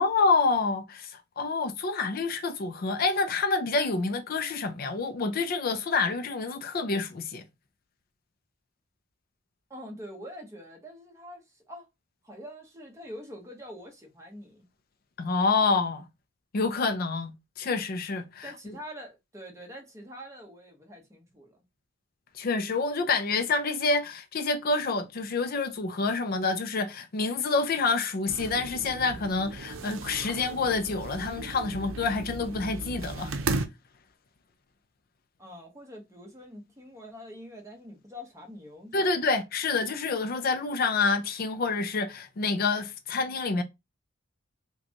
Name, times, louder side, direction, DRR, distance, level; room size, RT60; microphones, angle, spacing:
voice 1, 0.0-7.4 15.2-16.1 16.5-18.5 22.4-33.3 38.9-43.6, left 4 dB, 50° left, 0.4 m, -27 dB
voice 2, 9.7-11.9 12.2-14.7 18.4-21.6 35.4-39.1, equal, 15° right, 1.1 m, -45 dB
sound 1, 28.3-33.7, right 3 dB, 85° right, 0.6 m, -36 dB
5.0 x 2.3 x 2.8 m
head